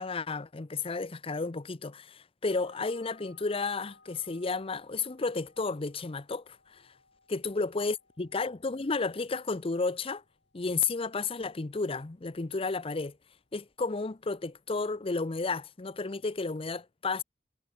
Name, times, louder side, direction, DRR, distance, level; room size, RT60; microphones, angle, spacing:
voice 1, 0.0-6.8 7.3-10.2 10.5-13.1 13.5-17.2, left 4 dB, 30° left, 0.7 m, -32 dB
sound 1, 2.5-14.8, left 3 dB, 75° left, 5.4 m, -65 dB
head